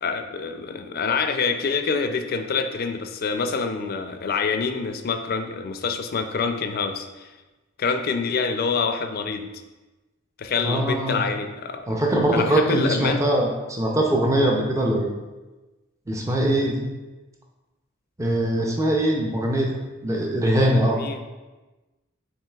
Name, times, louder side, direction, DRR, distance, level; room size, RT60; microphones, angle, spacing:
voice 1, 0.0-7.3 7.8-9.5 10.4-11.9 12.3-13.2 20.9-21.2, left 5 dB, 45° left, 7 dB, 0.4 m, -26 dB
voice 2, 10.6-11.2 11.9-15.1 16.1-16.8 18.2-19.7 20.0-21.0, right 1 dB, 15° right, 0 dB, 0.4 m, -22 dB
7.4 x 3.1 x 2.3 m, 1.2 s
head